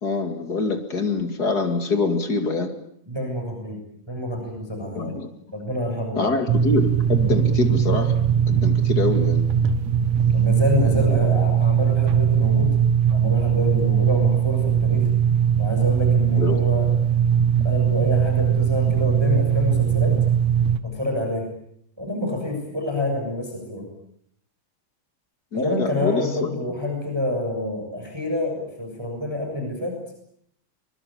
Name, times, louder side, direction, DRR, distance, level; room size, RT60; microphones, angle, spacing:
voice 1, 0.0-2.7 4.9-5.3 6.2-8.1 8.5-9.4 16.4-16.6 25.5-26.6, left 3 dB, 30° left, 7 dB, 2.1 m, -25 dB
voice 2, 3.1-3.8 4.1-5.2 5.5-6.4 10.3-12.7 13.1-15.1 15.6-16.9 17.6-20.1 20.8-21.5 22.0-23.9 25.5-30.0, left 1 dB, 5° right, 3 dB, 6.6 m, -27 dB
sound 1, 6.5-20.8, right 8 dB, 55° right, 2.3 m, -20 dB
24.0 x 23.0 x 8.9 m, 0.71 s
omnidirectional pair, 4.3 m